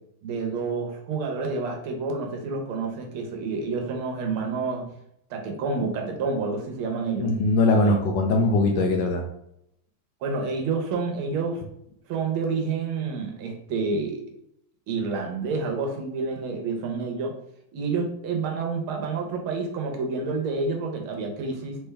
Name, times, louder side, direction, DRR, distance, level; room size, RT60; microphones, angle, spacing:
voice 1, 0.2-4.9 5.3-7.3 7.8-8.0 10.2-11.6 12.1-14.2 14.9-17.3 17.7-21.8, right 4 dB, 85° right, 2 dB, 1.8 m, -29 dB
voice 2, 7.2-9.2, left 2 dB, 75° left, 2 dB, 1.1 m, -21 dB
4.0 x 3.4 x 3.3 m, 0.75 s
omnidirectional pair, 2.3 m